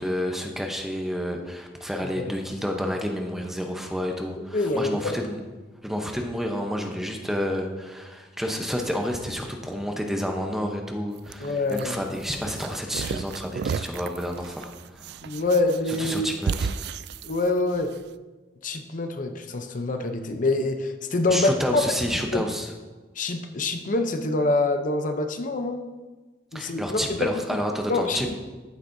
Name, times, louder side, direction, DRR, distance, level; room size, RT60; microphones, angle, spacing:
voice 1, 0.0-5.4 5.8-15.2 15.9-16.7 21.3-22.7 26.5-28.3, equal, ahead, 2 dB, 0.8 m, -30 dB
voice 2, 4.5-5.2 11.4-12.0 15.2-16.3 17.2-18.0 18.6-22.0 22.3-22.4 23.2-25.8 26.5-27.3 27.9-28.3, left 2 dB, 45° left, 7 dB, 0.6 m, -25 dB
sound 1, 11.2-18.0, right 6 dB, 65° right, 0.3 m, -34 dB
14.5 x 8.2 x 2.7 m, 1.3 s
head